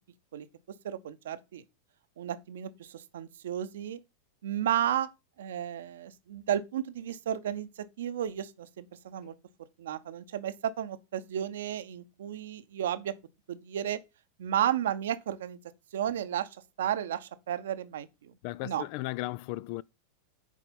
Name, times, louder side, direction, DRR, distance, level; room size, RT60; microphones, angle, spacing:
voice 1, 0.8-1.6 2.2-4.0 4.4-5.1 5.4-7.7 8.0-9.3 9.8-13.1 13.5-14.0 14.4-15.6 15.9-16.5 16.8-18.3 18.6-18.8, right 10 dB, 60° right, 0.8 m, -33 dB
voice 2, 18.4-19.8, left 19 dB, 45° left, 0.3 m, -35 dB
8.4 x 4.9 x 5.3 m
figure-of-eight pair, 90°, 0 cm